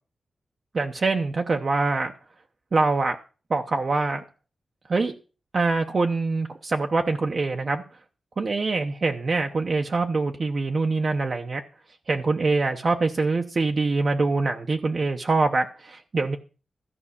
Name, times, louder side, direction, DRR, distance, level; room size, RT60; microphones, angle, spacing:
voice 1, 0.7-2.1 2.7-3.2 3.5-4.2 4.9-5.1 5.5-7.8 8.4-11.6 12.1-16.4, right 3 dB, 45° right, 0.9 m, -24 dB
14.0 x 5.4 x 8.5 m
wide cardioid pair, 135°, 0 cm